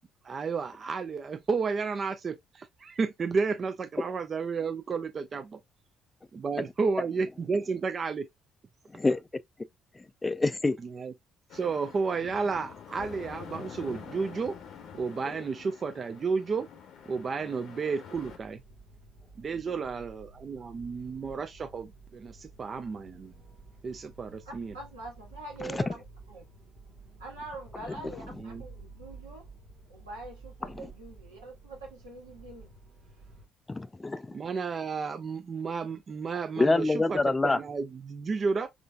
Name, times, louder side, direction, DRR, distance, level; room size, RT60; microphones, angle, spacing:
voice 1, 0.2-5.6 6.3-8.3 10.8-11.1 11.5-14.5 14.9-16.7 17.1-18.6 19.4-23.3 23.8-24.7 28.4-28.6 34.3-38.7, right 5 dB, 40° right, 0.5 m, -32 dB
voice 2, 10.2-10.8 33.7-34.4 36.6-37.6, left 3 dB, 20° left, 0.3 m, -25 dB
sound 1, 11.5-18.4, left 7 dB, 60° left, 0.7 m, -46 dB
sound 2, 18.1-33.5, right 3 dB, 65° right, 1.1 m, -52 dB
voice 3, 24.7-26.5 27.2-29.5 29.9-32.7, right 2 dB, 85° right, 1.5 m, -44 dB
3.7 x 3.2 x 2.2 m
figure-of-eight pair, 50°, 0 cm